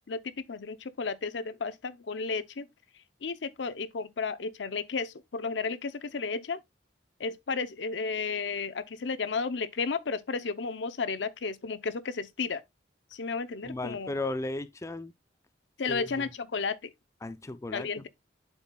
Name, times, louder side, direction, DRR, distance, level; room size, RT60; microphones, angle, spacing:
voice 1, 0.0-2.7 3.2-6.6 7.2-12.6 13.1-14.1 15.8-16.9 17.7-18.1, left 4 dB, 75° left, 0.6 m, -33 dB
voice 2, 13.6-15.1 15.9-16.1 17.2-18.0, left 2 dB, 15° left, 0.4 m, -35 dB
11.5 x 4.1 x 2.3 m
head